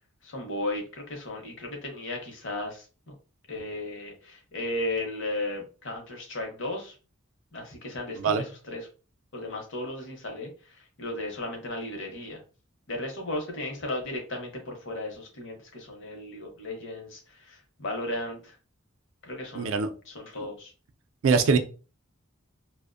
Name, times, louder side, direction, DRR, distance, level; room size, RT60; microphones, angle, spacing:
voice 1, 0.2-3.1 3.5-6.9 7.5-8.9 9.3-12.4 12.9-18.6 19.2-19.8 20.1-20.7, left 1 dB, 60° left, 0.7 m, -35 dB
voice 2, 19.5-19.9 21.2-21.6, right 5 dB, 70° right, 0.4 m, -22 dB
2.4 x 2.1 x 2.4 m
head